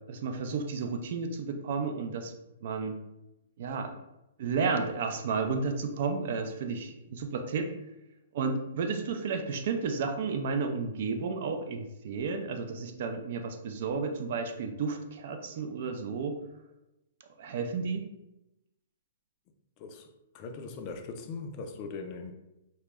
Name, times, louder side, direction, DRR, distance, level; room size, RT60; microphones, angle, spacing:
voice 1, 0.1-2.3 2.6-3.0 3.6-3.9 4.4-7.7 8.3-16.4 17.4-18.1, right 4 dB, 60° right, 5 dB, 0.3 m, -32 dB
voice 2, 19.8-20.1 20.3-22.3, left 4 dB, 35° left, 5 dB, 0.3 m, -40 dB
2.1 x 2.0 x 3.4 m, 0.93 s
hypercardioid pair, 135°, 0 cm